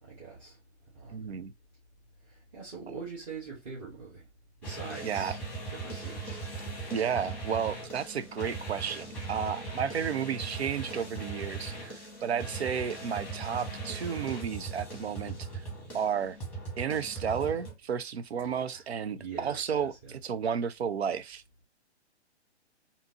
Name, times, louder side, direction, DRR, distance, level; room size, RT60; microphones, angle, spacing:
voice 1, 0.0-0.6 0.9-1.3 2.5-4.2 4.6-5.4 5.7-6.4 15.9-16.0 18.4-18.8 19.1-20.2, right 5 dB, 30° right, 1.4 m, -43 dB
voice 2, 1.1-1.5 5.0-5.3 6.9-15.6 15.9-16.4 16.8-21.4, right 7 dB, 70° right, 0.5 m, -32 dB
sound 1, 4.6-17.7, right 3 dB, 5° left, 1.1 m, -39 dB
3.6 x 2.8 x 2.8 m
figure-of-eight pair, 125°, 34 cm